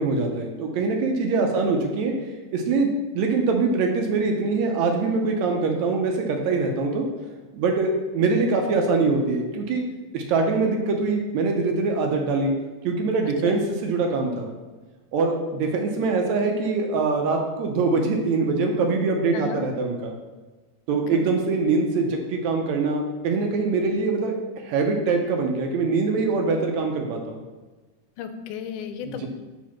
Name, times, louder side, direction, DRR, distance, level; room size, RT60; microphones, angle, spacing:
voice 1, 0.0-2.1 2.5-7.1 7.5-9.8 10.1-12.5 12.8-14.5 15.1-20.1 20.9-27.4 29.0-29.3, right 3 dB, 75° right, 2 dB, 1.8 m, -23 dB
voice 2, 13.2-13.6 19.3-19.7 21.1-21.3 28.2-29.3, left 7 dB, 90° left, 8 dB, 2.1 m, -34 dB
5.0 x 4.5 x 5.8 m, 1.3 s
omnidirectional pair, 3.5 m